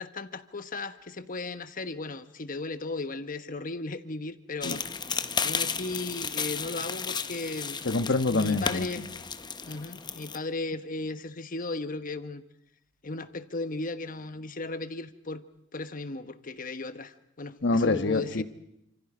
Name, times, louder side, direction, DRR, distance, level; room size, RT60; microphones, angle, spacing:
voice 1, 0.0-4.9 5.4-7.8 8.3-9.1 9.6-12.4 13.0-15.4 15.7-18.4, left 2 dB, 45° left, 11 dB, 1.2 m, -36 dB
sound 1, 4.6-10.4, left 5 dB, 25° left, 0.9 m, -33 dB
voice 2, 7.8-9.1 17.6-18.4, left 3 dB, 65° left, 10 dB, 1.3 m, -26 dB
29.0 x 27.0 x 5.1 m, 0.81 s
head